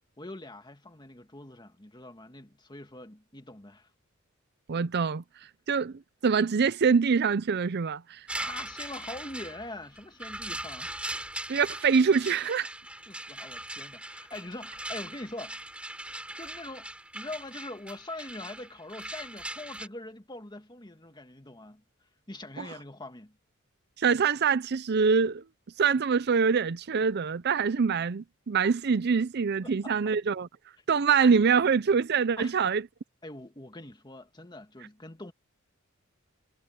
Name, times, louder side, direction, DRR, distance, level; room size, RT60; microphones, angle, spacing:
voice 1, 0.0-3.9 8.3-10.9 13.1-15.7 16.4-16.9 17.1-23.4 29.6-30.0 32.4-32.6 33.2-35.3, left 2 dB, 20° left, 1.9 m, -43 dB
voice 2, 4.7-5.2 5.7-8.3 11.5-12.7 22.6-22.7 24.0-25.4 25.8-30.5 30.9-32.8, right 5 dB, 50° right, 0.5 m, -24 dB
sound 1, 8.3-19.9, right 1 dB, 5° right, 3.6 m, -40 dB
head